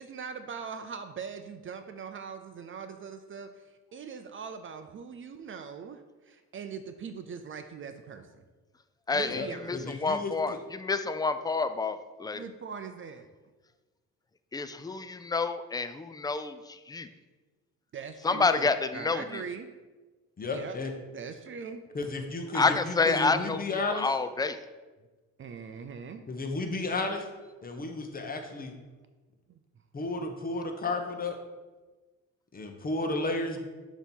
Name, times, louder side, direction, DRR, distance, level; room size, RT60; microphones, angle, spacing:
voice 1, 0.0-8.3 9.1-9.9 12.3-13.3 17.9-19.7 20.5-20.8 21.1-21.8 25.4-26.2 29.5-29.6, right 6 dB, 45° right, 8 dB, 0.5 m, -41 dB
voice 2, 9.1-9.4 9.7-12.4 14.5-17.1 18.2-19.4 22.5-23.6 23.9-24.6, left 4 dB, 15° left, 10 dB, 0.3 m, -28 dB
voice 3, 9.7-10.3 20.4-20.9 21.9-24.1 26.3-27.3 27.6-28.7 29.9-31.4 32.5-33.6, left 2 dB, 30° left, 4 dB, 1.0 m, -33 dB
6.5 x 3.0 x 5.4 m, 1.3 s
cardioid pair, 90°, 30 cm